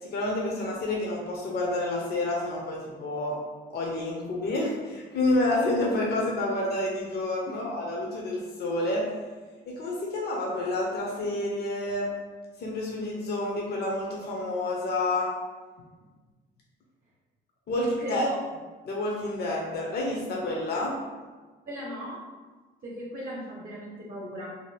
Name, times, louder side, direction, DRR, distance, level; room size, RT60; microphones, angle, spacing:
voice 1, 0.0-3.4 3.7-9.1 9.7-12.1 12.6-15.3 17.7-18.3 18.8-21.0, left 2 dB, 55° left, -2 dB, 0.6 m, -29 dB
voice 2, 17.8-18.3 21.6-22.2 22.8-24.5, right 1 dB, 45° right, -4 dB, 0.7 m, -36 dB
2.7 x 2.5 x 3.2 m, 1.3 s
cardioid pair, 90°, 20 cm